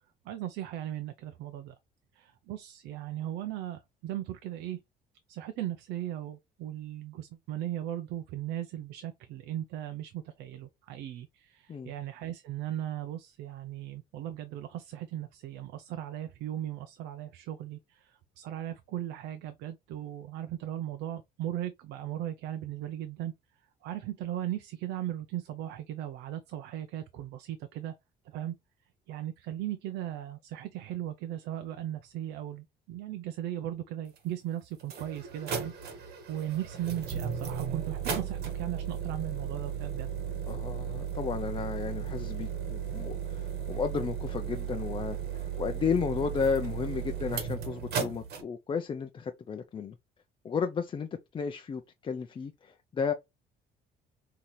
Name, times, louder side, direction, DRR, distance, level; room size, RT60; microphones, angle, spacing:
voice 1, 0.2-1.8 2.1-4.8 5.3-23.3 23.8-27.9 28.2-28.6 29.1-40.1, right 12 dB, 85° right, 0.5 m, -37 dB
sound 1, 34.2-34.3 34.8-48.4, right 8 dB, 65° right, 1.6 m, -35 dB
voice 2, 40.5-50.0 50.4-53.1, left 6 dB, 30° left, 0.5 m, -33 dB
5.5 x 2.8 x 3.1 m
cardioid pair, 110°, 17 cm